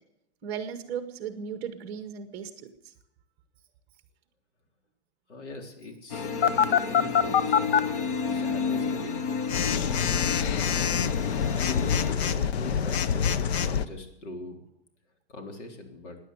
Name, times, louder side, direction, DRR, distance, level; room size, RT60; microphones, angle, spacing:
voice 1, 0.4-2.9, right 7 dB, 15° right, 8 dB, 0.9 m, -36 dB
voice 2, 5.3-7.9 8.3-9.2 9.5-10.1 10.9-13.3 13.6-14.6 15.3-16.2, left 2 dB, 80° left, 3 dB, 4.0 m, -42 dB
sound 1, 6.1-12.1, left 5 dB, 35° left, 0.8 m, -31 dB
Telephone, 6.4-7.8 9.5-13.9, left 7 dB, 60° left, 0.9 m, -25 dB
16.5 x 10.0 x 7.9 m, 0.83 s
supercardioid pair, 175°, 35 cm